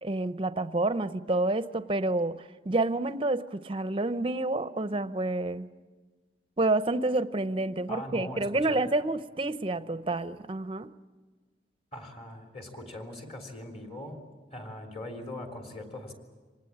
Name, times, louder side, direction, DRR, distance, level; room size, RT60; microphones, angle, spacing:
voice 1, 0.0-5.7 6.6-10.9, right 2 dB, 30° right, 0.7 m, -29 dB
voice 2, 7.9-8.9 11.9-14.2 14.5-16.1, left 1 dB, 35° left, 3.5 m, -41 dB
26.0 x 19.5 x 8.7 m
head